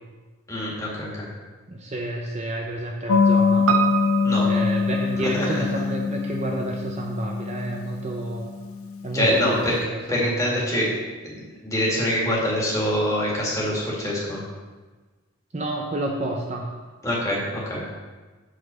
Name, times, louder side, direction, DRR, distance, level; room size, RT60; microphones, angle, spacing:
voice 1, 0.5-1.3 4.2-4.5 5.2-5.5 9.1-9.7 10.1-10.9 11.2-14.4 17.0-17.9, equal, 15° left, -5 dB, 1.9 m, -24 dB
voice 2, 1.7-3.7 4.5-8.5 9.0-10.8 15.5-16.8, right 1 dB, 30° right, 0 dB, 0.6 m, -30 dB
sound 1, 3.1-9.3, left 5 dB, 85° left, 0.5 m, -24 dB
Piano, 3.7-8.2 8.5-8.6, right 9 dB, 80° right, 0.6 m, -30 dB
8.0 x 4.0 x 6.7 m, 1.3 s
head